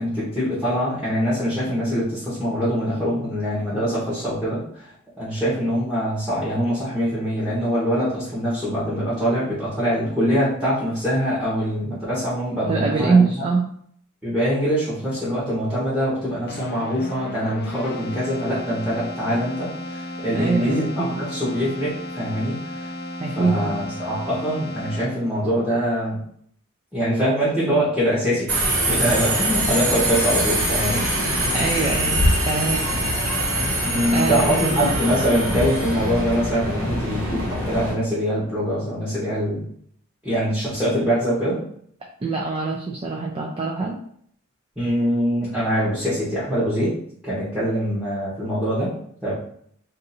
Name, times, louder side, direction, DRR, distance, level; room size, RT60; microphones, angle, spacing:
voice 1, 0.0-4.9 5.2-13.4 14.2-22.9 23.4-26.2 26.9-28.5 28.9-31.1 33.8-39.7 40.2-41.6 44.8-47.0 47.2-48.9 49.2-49.3, equal, 5° right, -10 dB, 1.0 m, -23 dB
voice 2, 12.7-13.7 20.3-21.2 23.2-23.8 31.2-31.3 31.5-32.8 34.1-34.9 42.2-44.0, right 4 dB, 25° right, -1 dB, 0.3 m, -23 dB
Keyboard (musical), 16.5-25.4, left 1 dB, 50° left, 0.4 m, -34 dB
Subway metro underground, 28.5-37.9, right 1 dB, 65° right, 1.3 m, -23 dB
2.7 x 2.5 x 4.0 m, 0.65 s
head